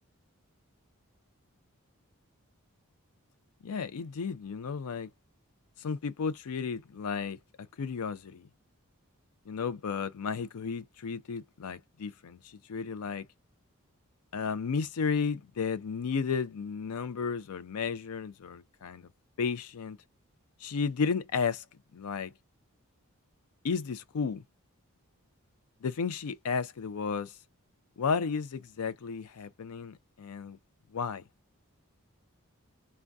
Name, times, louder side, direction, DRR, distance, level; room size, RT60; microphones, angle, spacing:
voice 1, 3.6-5.1 5.8-7.4 7.8-8.5 9.5-13.3 14.3-19.1 19.4-20.0 20.6-21.6 21.9-22.3 23.6-24.4 25.8-27.3 28.0-30.6 30.9-31.2, left 5 dB, 85° left, 0.4 m, -33 dB
3.4 x 2.2 x 2.5 m
head